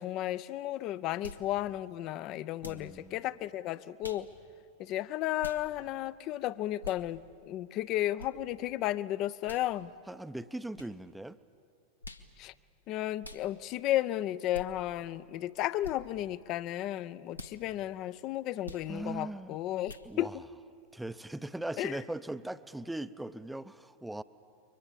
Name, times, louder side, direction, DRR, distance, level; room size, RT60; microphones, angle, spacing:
voice 1, 0.0-4.3 4.8-9.9 12.4-12.5 12.9-20.3 21.8-21.9, left 14 dB, 40° left, 17 dB, 0.6 m, -33 dB
sound 1, 1.2-1.5 2.6-2.9 4.0-4.3 5.4-5.6 6.8-7.0 8.2-8.3 9.4-9.7 10.7-10.9 12.0-12.3 13.2-13.4 14.5-14.7 15.8-16.0 17.3-17.6 18.6-18.9 19.8-20.1, left 2 dB, 85° left, 1.3 m, -45 dB
voice 2, 2.6-3.3 10.1-11.4 18.9-19.6 20.0-20.4 20.9-24.2, right 1 dB, 5° right, 13 dB, 0.7 m, -40 dB
29.5 x 24.0 x 7.4 m, 2.6 s
figure-of-eight pair, 90°, 0 cm